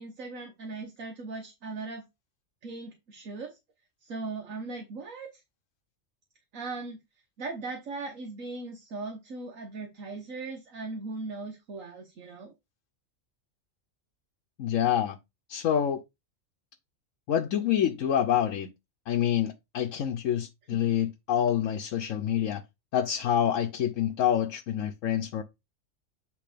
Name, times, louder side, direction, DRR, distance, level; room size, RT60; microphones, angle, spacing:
voice 1, 0.0-2.0 2.6-3.6 4.0-5.4 6.5-7.0 7.4-12.5 20.7-20.8, right 3 dB, 85° right, 1.6 m, -38 dB
voice 2, 14.6-15.2 15.5-16.0 17.3-18.7 19.1-22.6 22.9-25.4, left 10 dB, 80° left, 1.1 m, -27 dB
8.6 x 3.3 x 4.9 m
omnidirectional pair, 1.3 m